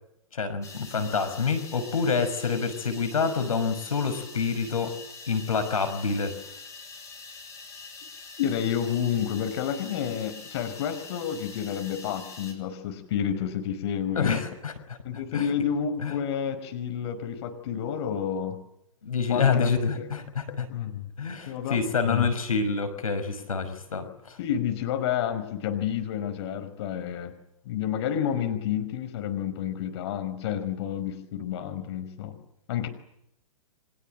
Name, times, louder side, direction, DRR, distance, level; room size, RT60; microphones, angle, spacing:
voice 1, 0.3-5.0 5.3-6.3 14.2-15.0 15.3-15.5 16.0-16.1 19.0-20.7 21.2-24.4, left 5 dB, 75° left, 10 dB, 5.8 m, -27 dB
sound 1, 0.6-12.5, left 4 dB, 15° left, 7.8 m, -44 dB
voice 2, 8.4-14.4 15.0-18.6 19.3-19.7 19.9-20.1 20.7-21.1 21.5-22.3 24.4-27.3 27.7-32.4 32.7-32.9, left 9 dB, 50° left, 8 dB, 5.2 m, -30 dB
29.5 x 26.0 x 7.7 m, 0.79 s
hypercardioid pair, 120°, 18 cm